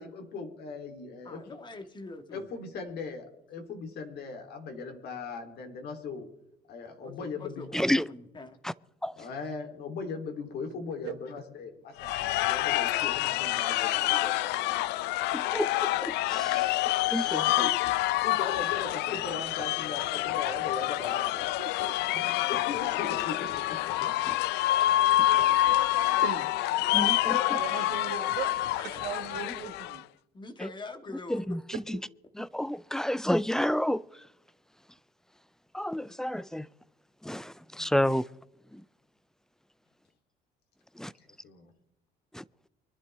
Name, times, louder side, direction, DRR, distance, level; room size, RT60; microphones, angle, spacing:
voice 1, 0.0-1.6 2.3-6.3 6.7-7.9 9.2-14.9 16.5-16.7 17.3-21.5 22.1-24.1 25.4-25.5 26.8-27.1 37.8-37.9 41.4-41.7, left 4 dB, 70° left, 3.1 m, -39 dB
voice 2, 1.2-2.5 7.0-8.6 28.8-29.0 29.4-29.7 30.3-31.6 36.1-36.2, left 2 dB, 25° left, 1.7 m, -44 dB
voice 3, 7.7-8.1 8.6-8.7 9.0-9.2 15.3-16.6 17.1-17.7 24.3-24.4 26.9-27.6 31.3-32.0 32.3-34.0 35.7-36.7 37.2-38.3 38.7-38.8 41.0-41.1 42.3-42.4, left 1 dB, 5° left, 0.4 m, -30 dB
sound 1, 12.0-30.0, left 15 dB, 90° left, 0.5 m, -27 dB
voice 4, 27.5-28.5 29.0-30.0 32.4-32.5, right 11 dB, 80° right, 1.6 m, -38 dB
24.5 x 11.5 x 3.4 m
cardioid pair, 110°, 17 cm